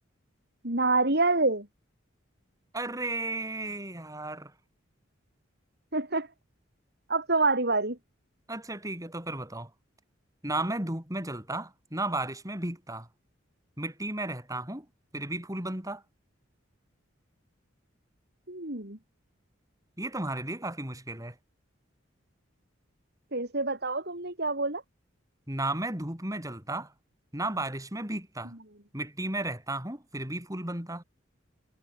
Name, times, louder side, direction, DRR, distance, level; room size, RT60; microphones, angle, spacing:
voice 1, 0.6-1.7 5.9-6.3 7.1-8.0 18.5-19.0 23.3-24.8, right 3 dB, 55° right, 7.3 m, -27 dB
voice 2, 2.7-4.5 8.5-9.7 10.4-13.1 13.8-14.9 15.1-16.0 20.0-21.4 25.5-26.9 27.3-28.5 28.9-31.0, right 2 dB, 15° right, 7.4 m, -34 dB
head